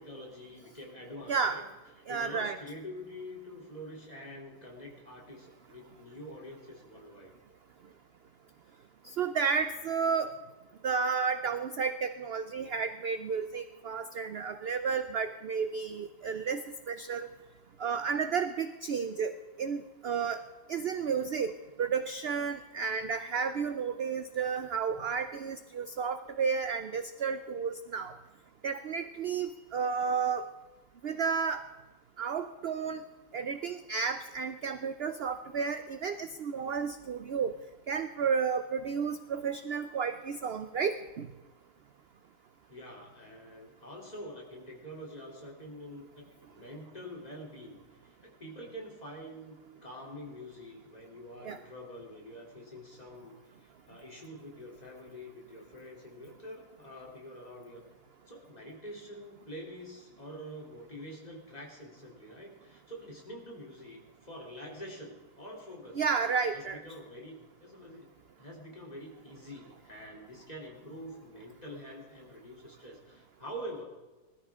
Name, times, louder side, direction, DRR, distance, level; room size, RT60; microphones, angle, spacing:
voice 1, 0.0-1.7 2.1-7.3 42.7-57.8 58.3-66.0 66.5-68.1 68.4-73.8, equal, 25° left, -2 dB, 3.2 m, -46 dB
voice 2, 1.3-1.6 2.1-2.6 9.0-10.3 10.8-16.6 16.9-17.3 17.8-19.3 19.6-20.4 20.7-21.5 21.8-28.1 28.6-30.5 31.0-31.6 32.2-33.0 33.3-37.5 37.9-41.3 51.4-51.6 66.0-66.8, right 6 dB, 65° right, 10 dB, 0.6 m, -32 dB
20.5 x 13.5 x 3.6 m, 1.2 s
omnidirectional pair, 1.7 m